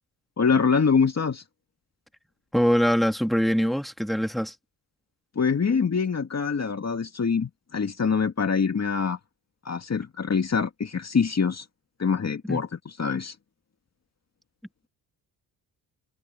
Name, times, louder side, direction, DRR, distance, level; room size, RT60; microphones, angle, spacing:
voice 1, 0.4-1.4 5.4-9.2 9.6-11.7 12.0-12.7 13.0-13.3, left 5 dB, 35° left, 2.2 m, -24 dB
voice 2, 2.5-4.5 12.5-12.6, equal, ahead, 3.3 m, -23 dB
supercardioid pair, 65°, 44 cm